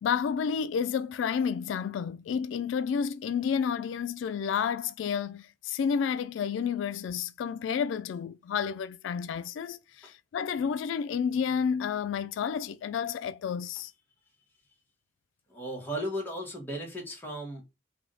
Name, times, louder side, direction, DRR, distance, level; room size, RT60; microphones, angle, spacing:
voice 1, 0.0-13.9, left 7 dB, 85° left, 0.3 m, -30 dB
voice 2, 15.5-17.6, equal, 10° left, 1.5 m, -35 dB
3.4 x 2.7 x 3.8 m
head